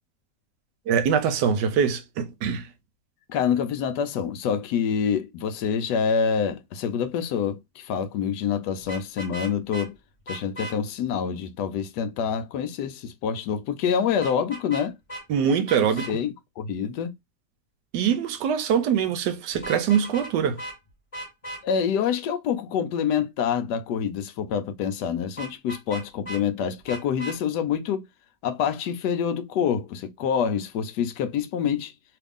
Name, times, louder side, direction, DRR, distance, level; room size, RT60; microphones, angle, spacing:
voice 1, 0.9-2.6 15.3-16.1 17.9-20.6, right 7 dB, 90° right, 1.2 m, -23 dB
voice 2, 3.3-9.9 10.3-14.9 16.1-17.1 21.6-28.1 28.4-31.9, left 7 dB, 80° left, 1.2 m, -26 dB
Vehicle horn car horn honking, 8.8-9.9 10.3-10.7 14.2-14.8 15.1-15.2 15.7-16.1 19.5-20.3 20.6-20.8 21.1-21.6 25.4-26.4 26.9-27.4, right 1 dB, 25° left, 0.9 m, -36 dB
3.1 x 2.4 x 3.5 m
omnidirectional pair, 1.8 m